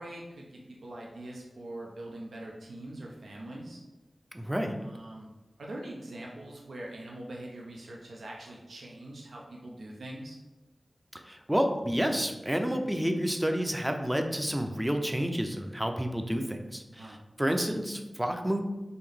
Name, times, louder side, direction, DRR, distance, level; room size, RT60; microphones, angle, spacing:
voice 1, 0.0-3.8 4.8-5.3 5.6-10.4 17.0-17.2, right 1 dB, 90° right, -2 dB, 0.5 m, -43 dB
voice 2, 4.3-4.8 11.1-18.6, equal, 10° right, 4 dB, 0.4 m, -30 dB
3.6 x 2.6 x 3.4 m, 1.1 s
wide cardioid pair, 55°, 0 cm